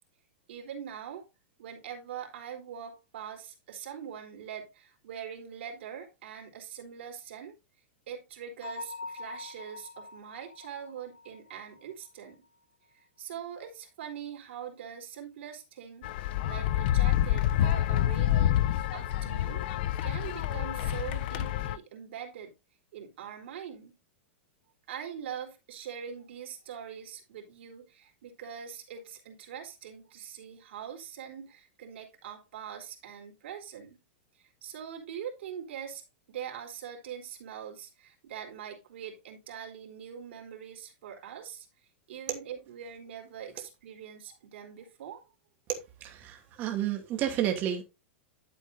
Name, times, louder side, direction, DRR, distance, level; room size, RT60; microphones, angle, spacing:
voice 1, 0.5-1.3 1.6-7.5 8.1-12.4 12.9-19.6 20.0-22.5 22.9-24.0 24.9-34.0 34.3-41.7 42.1-45.3, right 8 dB, 70° right, 4.0 m, -43 dB
Bell, 8.6-12.3, left 3 dB, 85° left, 6.2 m, -44 dB
sound 1, 16.0-21.8, left 12 dB, 50° left, 0.6 m, -27 dB
voice 2, 46.0-47.8, right 10 dB, 30° right, 2.7 m, -30 dB
12.0 x 8.0 x 2.7 m
supercardioid pair, 160°, 6 cm